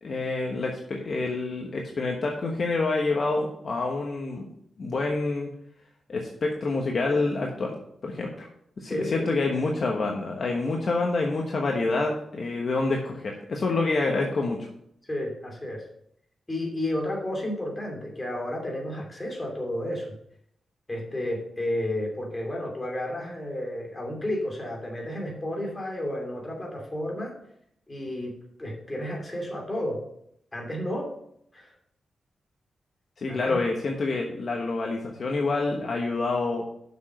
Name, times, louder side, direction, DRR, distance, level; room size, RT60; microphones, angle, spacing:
voice 1, 0.0-4.5 4.8-5.5 6.1-8.5 8.8-14.7 33.2-36.6, left 3 dB, 45° left, 0 dB, 1.2 m, -27 dB
voice 2, 8.9-9.3 15.1-15.8 16.5-20.1 20.9-27.3 27.9-28.3 28.6-30.0 30.5-31.1 31.5-31.7 33.3-33.6, left 1 dB, 20° left, 0 dB, 2.8 m, -32 dB
7.2 x 6.3 x 6.4 m, 0.71 s
wide cardioid pair, 140°, 0 cm